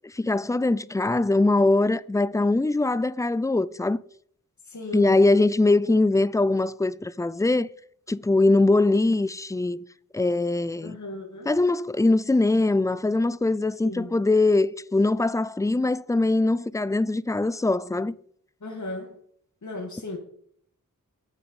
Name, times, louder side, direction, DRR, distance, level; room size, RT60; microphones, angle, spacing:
voice 1, 0.0-4.0 4.9-7.7 8.1-9.8 10.1-11.0 11.5-18.1, left 2 dB, 10° left, 0.4 m, -22 dB
voice 2, 4.6-5.2 10.8-11.6 13.8-14.2 18.6-19.2 19.6-20.2, left 2 dB, 55° left, 2.4 m, -36 dB
9.1 x 7.0 x 7.1 m
wide cardioid pair, 60°, 34 cm